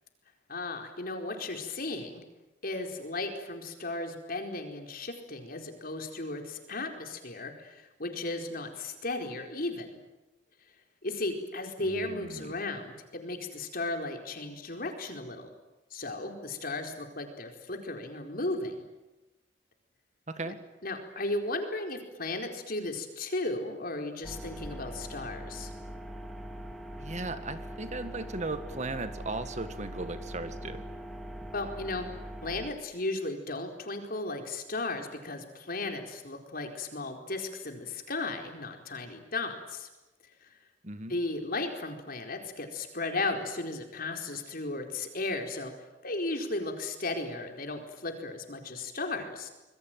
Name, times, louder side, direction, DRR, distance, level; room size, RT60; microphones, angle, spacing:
voice 1, 0.5-2.2 2.6-10.0 11.0-15.5 15.9-18.8 20.4-20.5 20.8-25.7 31.5-32.1 32.4-39.9 40.4-40.5 41.1-45.7 46.0-49.5, left 2 dB, 50° left, 4 dB, 4.5 m, -35 dB
voice 2, 11.8-12.5 20.3-20.6 27.0-30.8 40.8-41.2, right 2 dB, 40° right, 10 dB, 1.8 m, -37 dB
sound 1, 24.2-32.7, equal, ahead, 2.8 m, -42 dB
26.5 x 21.5 x 9.3 m, 1.0 s
head